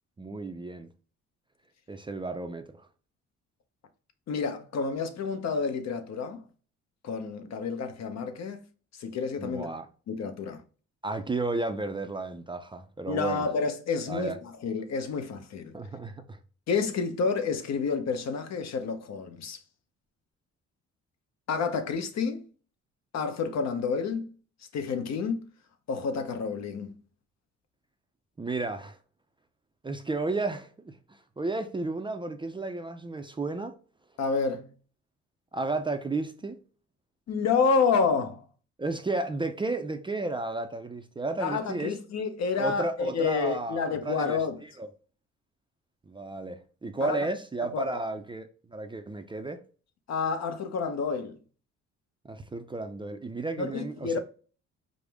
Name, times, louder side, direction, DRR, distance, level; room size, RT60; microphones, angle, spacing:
voice 1, 0.2-0.9 1.9-2.6 9.4-9.9 11.0-13.5 14.1-14.4 15.7-16.4 28.4-29.0 29.8-30.9 31.4-33.7 35.5-36.6 38.8-41.9 42.6-44.4 44.8-44.9 46.1-49.6 52.2-54.2, right 2 dB, 15° right, 0.4 m, -33 dB
voice 2, 4.3-6.4 7.0-8.6 9.0-9.7 10.1-10.6 13.1-15.7 16.7-19.6 21.5-22.5 23.1-24.3 24.7-25.4 25.9-26.9 34.2-34.7 37.3-38.5 41.4-44.6 47.0-47.2 47.7-48.0 50.1-51.4 53.6-54.2, left 5 dB, 60° left, 0.8 m, -29 dB
5.0 x 2.0 x 3.5 m
cardioid pair, 90°, 30 cm